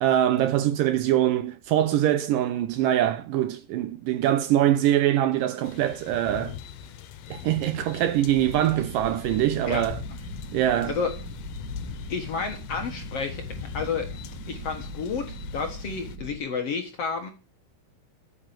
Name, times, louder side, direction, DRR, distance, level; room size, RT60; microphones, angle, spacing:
voice 1, 0.0-6.6 7.3-10.0 10.5-11.0, right 12 dB, 75° right, 2.1 m, -23 dB
sound 1, 5.6-16.2, left 9 dB, 80° left, 2.7 m, -42 dB
sound 2, 8.3-16.4, equal, 35° right, 2.0 m, -39 dB
voice 2, 10.8-11.1 12.1-14.1 14.5-17.3, left 5 dB, 55° left, 1.9 m, -31 dB
9.6 x 8.3 x 7.5 m
omnidirectional pair, 4.4 m